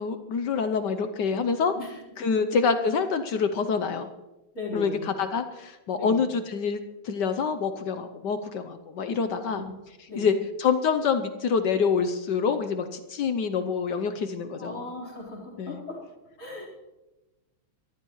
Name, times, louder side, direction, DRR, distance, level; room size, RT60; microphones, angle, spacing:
voice 1, 0.0-1.7 2.2-4.1 4.7-9.6 10.2-14.8 15.6-15.8, left 5 dB, 65° left, 9 dB, 1.2 m, -26 dB
voice 2, 4.5-5.1 6.0-6.2 9.5-9.7 10.1-10.3 14.6-16.0 16.4-16.7, left 2 dB, 35° left, -4 dB, 4.4 m, -37 dB
23.5 x 14.5 x 3.1 m, 1.1 s
omnidirectional pair, 2.4 m